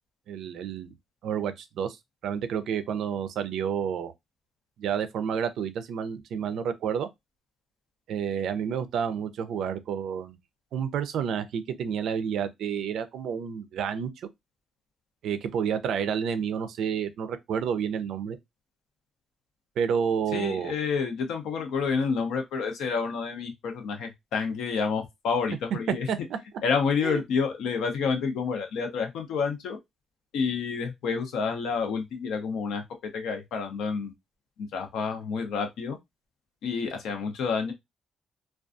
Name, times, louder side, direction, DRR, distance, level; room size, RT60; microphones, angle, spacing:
voice 1, 0.3-0.9 1.2-2.0 2.2-4.1 4.8-7.1 8.1-10.4 10.7-14.3 15.2-18.4 19.8-20.7 26.1-26.2 27.0-27.2, right 7 dB, 80° right, 0.4 m, -30 dB
voice 2, 20.3-26.1 26.6-29.8 30.3-34.1 34.6-36.0 36.6-37.7, left 5 dB, 85° left, 0.6 m, -29 dB
2.4 x 2.2 x 2.5 m
cardioid pair, 90°, 0 cm